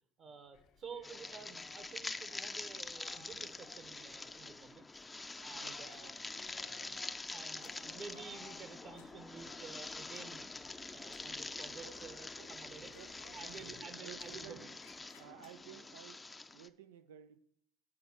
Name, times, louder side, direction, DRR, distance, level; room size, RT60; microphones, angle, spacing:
voice 1, 0.2-5.0 5.4-6.2 6.5-7.0 7.3-10.5 10.9-12.9 13.3-14.6, right 5 dB, 50° right, 9 dB, 1.3 m, -51 dB
sound 1, 0.5-13.8, left 7 dB, 60° left, 0.8 m, -61 dB
sound 2, 1.0-16.7, left 3 dB, 15° left, 0.6 m, -46 dB
voice 2, 5.5-6.1 11.8-12.0 12.4-12.5 12.8-14.7 15.2-16.2 16.5-17.4, right 10 dB, 80° right, 10 dB, 0.6 m, -55 dB
sound 3, 5.9-6.7 6.9-10.7 11.0-11.4 12.8-13.7 14.1-15.9, left 7 dB, 80° left, 1.0 m, -67 dB
8.6 x 4.2 x 7.2 m, 0.67 s
hypercardioid pair, 65°, 0 cm